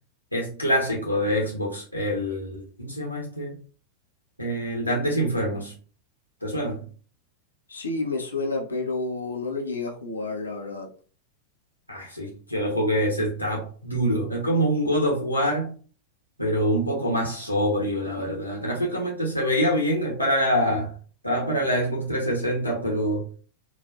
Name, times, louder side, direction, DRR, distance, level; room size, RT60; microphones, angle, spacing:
voice 1, 0.3-3.6 4.4-5.8 6.4-6.9 11.9-15.8 16.4-21.0 21.2-23.3, equal, 90° right, 0.8 m, -25 dB
voice 2, 7.7-10.9, left 3 dB, 75° left, 0.8 m, -30 dB
4.0 x 2.4 x 2.4 m
figure-of-eight pair, 90°, 0 cm